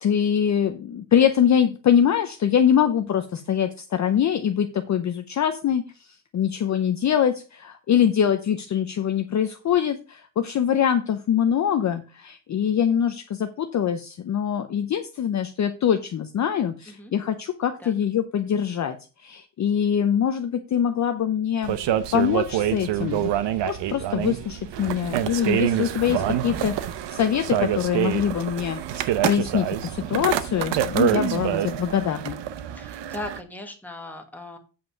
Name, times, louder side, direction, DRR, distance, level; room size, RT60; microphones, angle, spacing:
voice 1, 0.0-6.1 6.3-19.0 19.2-21.8 22.1-23.3 23.7-32.4, left 9 dB, 35° left, 7 dB, 0.6 m, -23 dB
sound 1, 21.6-33.4, right 11 dB, 60° right, 0.8 m, -26 dB
voice 2, 32.7-34.6, left 2 dB, 5° left, 3 dB, 1.3 m, -38 dB
8.4 x 5.2 x 5.6 m, 0.34 s
cardioid pair, 165°, 49 cm